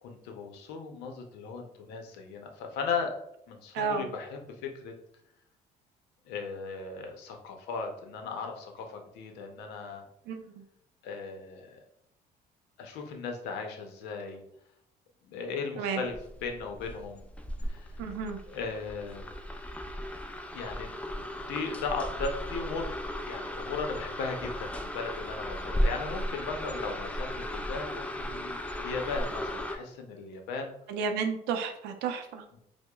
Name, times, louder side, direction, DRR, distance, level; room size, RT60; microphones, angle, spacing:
voice 1, 0.0-3.1 3.5-4.9 6.3-10.1 11.0-11.8 12.8-14.4 15.2-16.1 16.4-17.2 17.7-18.0 18.5-19.3 20.5-22.9 23.2-30.7 32.5-32.6, left 4 dB, 90° left, 4 dB, 0.6 m, -37 dB
voice 2, 3.7-4.1 10.3-10.5 15.8-16.0 18.0-18.4 30.9-32.4, right 6 dB, 90° right, 6 dB, 0.5 m, -32 dB
sound 1, 16.0-29.8, equal, 10° left, 0.3 m, -35 dB
4.7 x 2.1 x 2.2 m, 0.74 s
cardioid pair, 110°, 17 cm